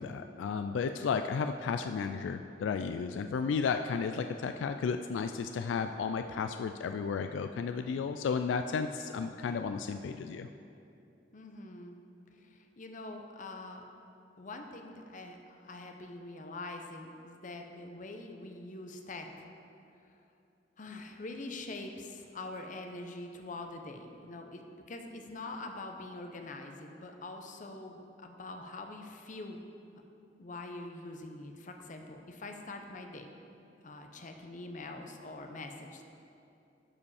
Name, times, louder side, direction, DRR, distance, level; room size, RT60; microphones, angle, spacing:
voice 1, 0.0-10.5, left 5 dB, 80° left, 7 dB, 0.3 m, -33 dB
voice 2, 11.3-12.0 12.3-13.8 14.4-19.5 20.8-29.6 30.4-33.3 33.8-36.0, left 2 dB, 45° left, 4 dB, 0.7 m, -44 dB
12.5 x 5.1 x 4.8 m, 2.7 s
head